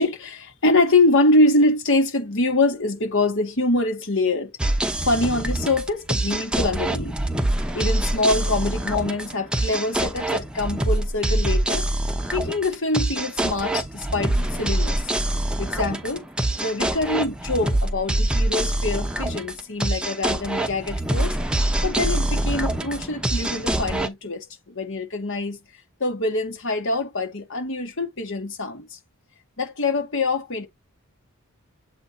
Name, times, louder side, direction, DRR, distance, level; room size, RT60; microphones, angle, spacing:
voice 1, 0.0-4.5 5.0-7.2 7.7-11.9 12.3-15.0 15.6-16.2 16.6-21.4 21.8-25.6 26.0-29.0 29.6-30.7, left 2 dB, 60° left, 2.1 m, -24 dB
sound 1, 4.6-24.1, right 1 dB, 5° right, 0.9 m, -25 dB
7.9 x 3.2 x 4.1 m
head